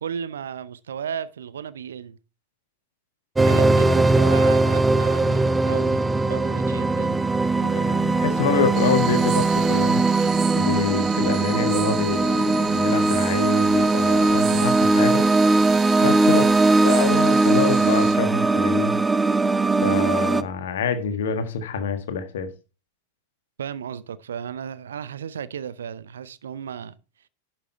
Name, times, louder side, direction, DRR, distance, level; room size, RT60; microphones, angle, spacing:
voice 1, 0.0-2.2 3.4-7.2 16.2-16.5 23.6-27.0, right 8 dB, 65° right, 0.6 m, -34 dB
sound 1, 3.3-20.4, right 3 dB, 10° right, 0.5 m, -20 dB
voice 2, 7.6-10.0 10.6-15.3 16.0-16.4 16.8-18.9 19.8-22.5, left 6 dB, 60° left, 1.6 m, -26 dB
sound 2, 8.7-18.2, right 10 dB, 35° right, 1.1 m, -36 dB
11.0 x 6.0 x 4.5 m
figure-of-eight pair, 90°, 0 cm